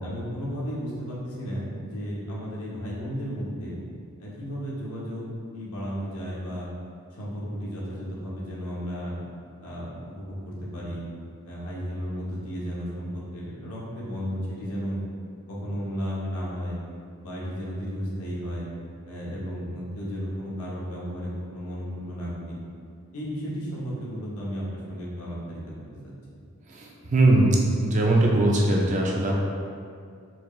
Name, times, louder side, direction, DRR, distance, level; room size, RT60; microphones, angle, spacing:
voice 1, 0.0-3.8 4.2-5.3 5.5-6.7 7.1-9.2 9.6-11.1 11.4-15.0 15.5-16.8 17.2-18.7 19.1-22.6 23.1-25.7 26.0-26.1, equal, 85° left, -6 dB, 0.9 m, -34 dB
voice 2, 26.7-27.6 27.8-29.4, right 1 dB, 35° right, -2 dB, 0.4 m, -21 dB
4.4 x 2.4 x 3.0 m, 2.2 s
head